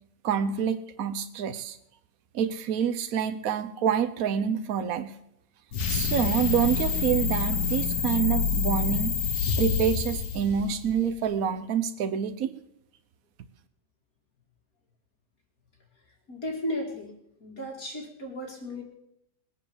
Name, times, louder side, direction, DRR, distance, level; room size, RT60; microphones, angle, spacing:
voice 1, 0.2-1.8 2.3-5.1 5.9-9.1 9.6-12.5, right 8 dB, 70° right, 9 dB, 1.2 m, -27 dB
sound 1, 5.7-11.1, left 4 dB, 90° left, 1.6 m, -27 dB
voice 2, 16.3-17.1 17.4-18.8, left 1 dB, 70° left, 1 dB, 3.1 m, -34 dB
21.0 x 7.7 x 7.0 m, 0.77 s
omnidirectional pair, 1.6 m